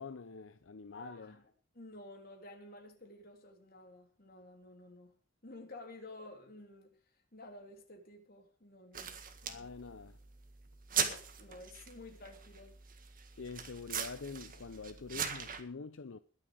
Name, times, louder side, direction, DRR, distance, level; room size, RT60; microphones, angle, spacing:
voice 1, 0.0-1.3 9.4-10.2 13.4-16.2, left 4 dB, 80° left, 0.7 m, -46 dB
voice 2, 0.9-1.5 1.7-5.1 5.4-9.3 10.9-12.7, left 2 dB, 50° left, 3.2 m, -52 dB
sound 1, 8.9-15.6, right 7 dB, 45° right, 1.8 m, -40 dB
21.0 x 7.1 x 5.0 m
head